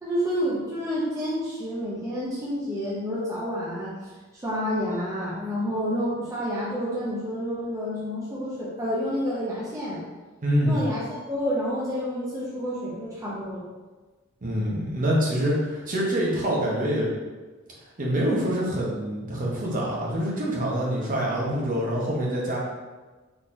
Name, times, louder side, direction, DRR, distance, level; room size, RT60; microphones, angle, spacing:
voice 1, 0.0-3.9 4.3-10.0 10.6-13.6, equal, 15° right, -8 dB, 0.5 m, -29 dB
voice 2, 10.4-10.8 14.4-17.1 18.0-22.6, equal, 40° right, -4 dB, 0.8 m, -25 dB
3.8 x 2.8 x 2.5 m, 1.3 s
head